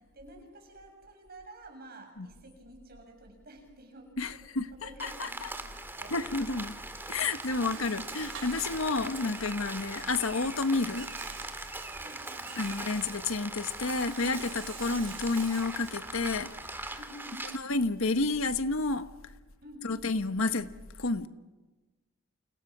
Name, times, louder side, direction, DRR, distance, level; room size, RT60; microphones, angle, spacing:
voice 1, 0.0-4.4 4.8-6.3 7.0-8.1 11.7-12.8 17.0-17.6 19.6-20.1, right 1 dB, 50° right, 3 dB, 7.0 m, -51 dB
voice 2, 4.2-4.7 5.0-5.3 6.1-6.7 7.1-11.1 11.5-11.6 12.6-16.5 16.8-17.0 17.5-19.1 19.8-20.7 21.0-21.3, left 3 dB, 85° left, 10 dB, 1.3 m, -30 dB
Rain, 5.0-17.6, right 2 dB, 10° right, 2.1 m, -41 dB
Rattle, 5.8-16.9, right 6 dB, 70° right, 6.4 m, -49 dB
30.0 x 29.0 x 6.1 m, 1.2 s
head